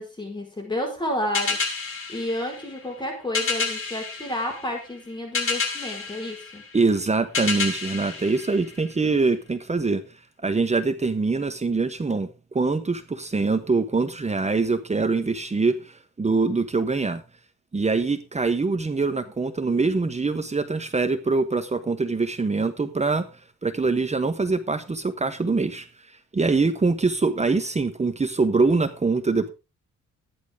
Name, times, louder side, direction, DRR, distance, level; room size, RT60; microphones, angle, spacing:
voice 1, 0.0-6.6, left 1 dB, 15° left, 4.8 m, -31 dB
sound 1, 1.3-9.2, left 4 dB, 45° left, 5.2 m, -30 dB
voice 2, 6.7-10.0 10.4-12.3 12.5-17.2 17.7-23.2 23.6-25.9 26.3-29.5, right 3 dB, 20° right, 1.2 m, -24 dB
13.5 x 11.0 x 3.7 m
cardioid pair, 90°, 30 cm